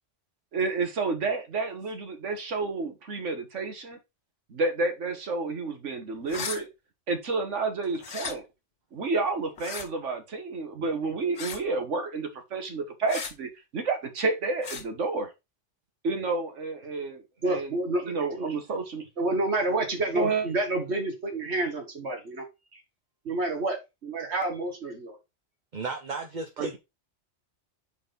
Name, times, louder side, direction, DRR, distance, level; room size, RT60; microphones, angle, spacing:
voice 1, 0.5-4.0 4.5-6.7 7.1-8.4 8.9-15.3 16.0-17.8 18.0-19.0 20.1-20.5 26.6-26.8, right 3 dB, 85° right, 1.7 m, -30 dB
sound 1, 6.3-6.6 8.0-8.3 9.6-9.9 11.4-11.7 13.1-13.3 14.6-14.8, left 6 dB, 80° left, 1.4 m, -35 dB
voice 2, 17.4-18.5 19.2-22.5 22.7-22.8 23.3-25.2, right 2 dB, 65° right, 2.0 m, -29 dB
voice 3, 25.7-26.8, right 4 dB, 40° right, 0.9 m, -34 dB
4.9 x 4.1 x 5.2 m
omnidirectional pair, 1.2 m